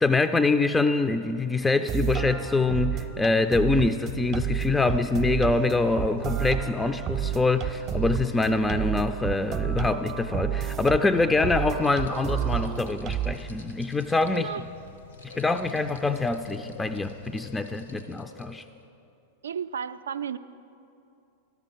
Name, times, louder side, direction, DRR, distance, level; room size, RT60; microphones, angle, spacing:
voice 1, 0.0-14.5 15.4-18.6, left 3 dB, 10° left, 8 dB, 0.3 m, -25 dB
sound 1, 1.6-13.3, right 10 dB, 35° right, 0.6 m, -31 dB
sound 2, 3.0-17.9, left 4 dB, 70° left, 0.6 m, -44 dB
sound 3, 11.8-18.9, left 3 dB, 90° left, 1.0 m, -49 dB
voice 2, 19.4-20.4, right 8 dB, 75° right, 13 dB, 0.3 m, -33 dB
11.5 x 6.9 x 6.0 m, 2.7 s
figure-of-eight pair, 95°, 0 cm